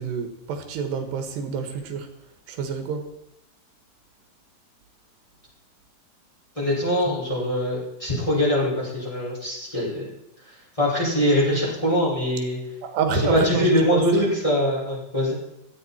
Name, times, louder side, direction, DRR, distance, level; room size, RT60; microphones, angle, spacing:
voice 1, 0.0-2.1 2.5-3.1 12.8-14.3, right 6 dB, 85° right, 6 dB, 3.6 m, -28 dB
voice 2, 6.6-10.1 10.8-12.6 13.1-15.4, left 1 dB, 5° left, -6 dB, 5.5 m, -23 dB
16.5 x 13.5 x 4.4 m, 0.84 s
omnidirectional pair, 4.7 m